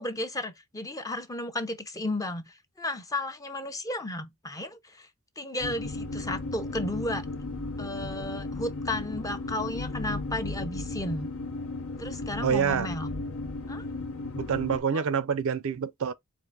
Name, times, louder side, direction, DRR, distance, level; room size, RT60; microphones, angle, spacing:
voice 1, 0.0-5.1 5.4-7.3 7.8-11.3 12.0-13.1 13.7-13.8 14.9-15.0, left 1 dB, 15° left, 0.6 m, -34 dB
sound 1, 5.6-14.8, left 2 dB, 65° left, 0.8 m, -35 dB
voice 2, 12.4-12.9 14.4-16.1, right 7 dB, 65° right, 0.4 m, -27 dB
4.4 x 2.5 x 3.8 m
head